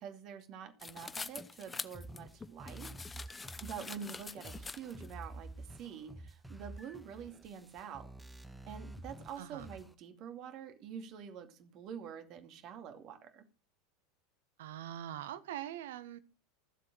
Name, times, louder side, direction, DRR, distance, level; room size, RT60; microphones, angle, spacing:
voice 1, 0.0-2.9 3.6-8.1 8.7-13.4, right 7 dB, 45° right, 8 dB, 2.5 m, -46 dB
sound 1, 0.8-5.1, left 4 dB, 15° left, 0.8 m, -45 dB
sound 2, 1.9-9.9, right 2 dB, 5° right, 1.5 m, -50 dB
voice 2, 14.6-16.2, right 12 dB, 65° right, 14 dB, 1.4 m, -43 dB
14.5 x 7.7 x 6.2 m, 0.33 s
figure-of-eight pair, 80°, 0 cm